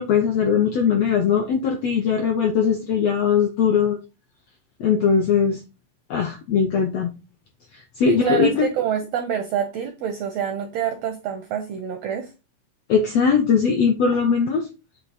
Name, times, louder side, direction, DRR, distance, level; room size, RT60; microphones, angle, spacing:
voice 1, 0.0-4.0 4.8-5.6 6.1-7.1 7.7-8.7 12.9-14.7, left 6 dB, 80° left, 3 dB, 1.4 m, -20 dB
voice 2, 8.1-12.3, right 8 dB, 80° right, 6 dB, 1.4 m, -26 dB
7.9 x 3.0 x 4.1 m, 0.29 s
omnidirectional pair, 3.8 m